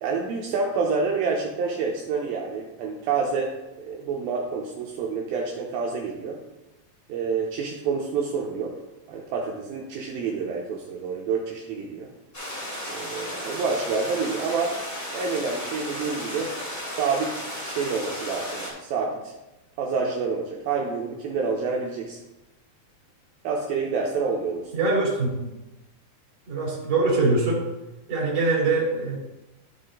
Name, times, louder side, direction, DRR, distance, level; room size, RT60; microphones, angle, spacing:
voice 1, 0.0-6.4 7.1-8.8 9.1-12.1 12.9-14.8 15.1-16.5 16.9-19.3 19.8-22.2 23.4-24.9, right 5 dB, 80° right, -1 dB, 2.4 m, -28 dB
sound 1, 12.3-18.7, left 1 dB, 15° left, 2.1 m, -34 dB
voice 2, 24.7-25.3 26.5-27.6 28.1-29.2, right 3 dB, 30° right, -4 dB, 2.5 m, -23 dB
12.0 x 4.1 x 3.7 m, 0.99 s
omnidirectional pair, 4.6 m